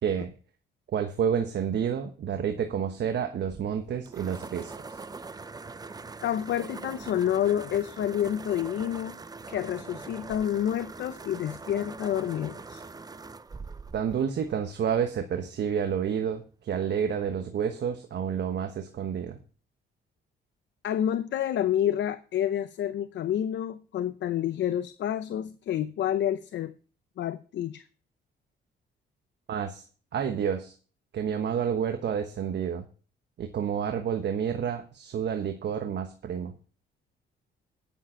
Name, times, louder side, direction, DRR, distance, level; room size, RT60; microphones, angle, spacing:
voice 1, 0.0-0.3 0.9-5.0 13.9-19.4 29.5-29.8 30.1-30.7 31.1-32.8 33.4-36.5, right 8 dB, 60° right, 6 dB, 1.2 m, -29 dB
sound 1, 3.3-15.2, right 4 dB, 20° right, 0.6 m, -43 dB
voice 2, 6.2-9.2 9.5-12.8 20.8-26.7 27.2-27.8, left 10 dB, 65° left, 12 dB, 0.6 m, -29 dB
10.0 x 7.2 x 5.7 m, 0.38 s
cardioid pair, 90°, 20 cm